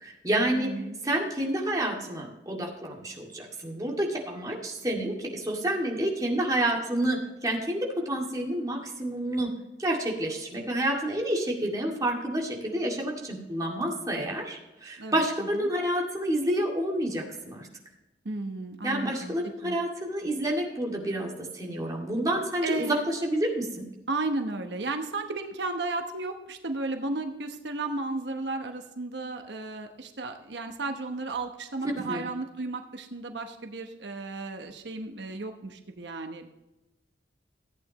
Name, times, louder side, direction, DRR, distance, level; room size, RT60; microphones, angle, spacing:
voice 1, 0.0-0.7 1.0-9.5 9.8-17.7 18.8-23.9 32.0-32.2, right 1 dB, 20° right, -1 dB, 2.2 m, -29 dB
voice 2, 0.5-1.0 15.0-15.7 18.2-19.3 19.6-19.8 22.6-23.0 24.1-36.5, right 2 dB, 85° right, 5 dB, 1.0 m, -34 dB
14.5 x 8.9 x 3.0 m, 1.0 s
head